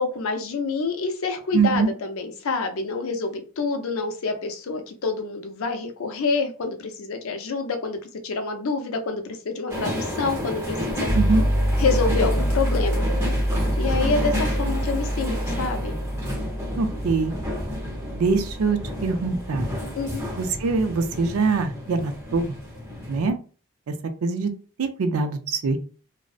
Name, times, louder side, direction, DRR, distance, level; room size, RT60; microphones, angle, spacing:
voice 1, 0.0-11.1 11.8-13.0 13.8-16.0 20.0-20.3, left 4 dB, 70° left, 6 dB, 0.5 m, -27 dB
voice 2, 1.5-1.9 11.2-11.4 16.8-17.3 18.1-19.7 20.4-22.5 23.1-23.4 24.2-24.5 24.8-25.8, right 4 dB, 80° right, 8 dB, 0.4 m, -23 dB
sound 1, 9.7-23.3, left 1 dB, 10° right, 0.5 m, -31 dB
sound 2, 11.1-20.0, equal, 30° left, 0.6 m, -26 dB
2.5 x 2.0 x 2.4 m, 0.38 s
head